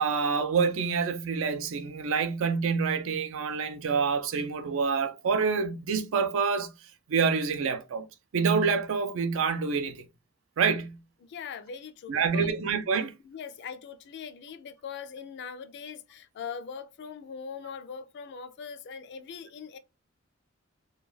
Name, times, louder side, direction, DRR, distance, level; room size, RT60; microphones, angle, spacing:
voice 1, 0.0-6.7 7.1-8.1 8.3-10.1 10.6-11.0 12.1-13.1, right 5 dB, 65° right, 0.4 m, -27 dB
voice 2, 11.2-12.6 13.0-19.8, left 6 dB, 55° left, 0.3 m, -41 dB
2.3 x 2.2 x 3.1 m
head